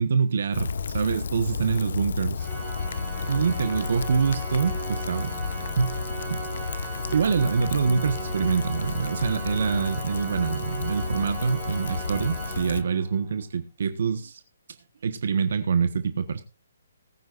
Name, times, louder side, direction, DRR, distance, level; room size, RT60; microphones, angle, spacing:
voice 1, 0.0-2.5 3.3-5.3 5.8-6.0 6.3-6.4 6.8-6.9 7.1-14.4 15.0-16.4, right 5 dB, 60° right, 9 dB, 1.3 m, -25 dB
Rain, 0.5-12.8, left 5 dB, 60° left, 0.9 m, -32 dB
Organ, 2.4-13.2, right 5 dB, 10° right, 3.4 m, -38 dB
20.0 x 9.4 x 2.6 m, 0.31 s
hypercardioid pair, 165°, 0 cm